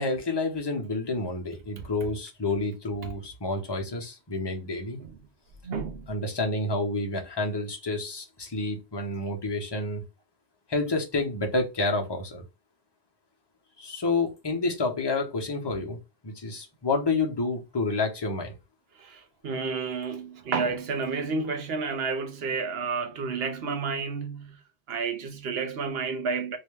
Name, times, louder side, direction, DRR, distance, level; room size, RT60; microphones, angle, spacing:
voice 1, 0.0-5.0 6.1-10.0 10.7-12.4 13.8-16.0 16.2-18.6, left 3 dB, 25° left, 0.8 m, -29 dB
voice 2, 5.6-6.1 19.0-24.6 24.9-26.6, right 4 dB, 75° right, 1.0 m, -31 dB
3.3 x 2.8 x 3.3 m
omnidirectional pair, 1.1 m